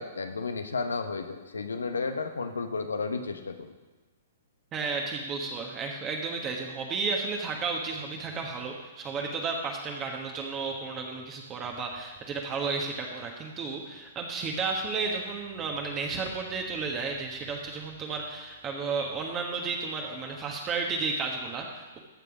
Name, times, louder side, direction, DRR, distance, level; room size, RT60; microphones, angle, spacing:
voice 1, 0.0-3.7, left 4 dB, 85° left, 7 dB, 1.0 m, -33 dB
voice 2, 4.7-22.0, right 4 dB, 25° right, 1 dB, 1.3 m, -33 dB
14.0 x 5.4 x 5.0 m, 1.2 s
hypercardioid pair, 120°, 0 cm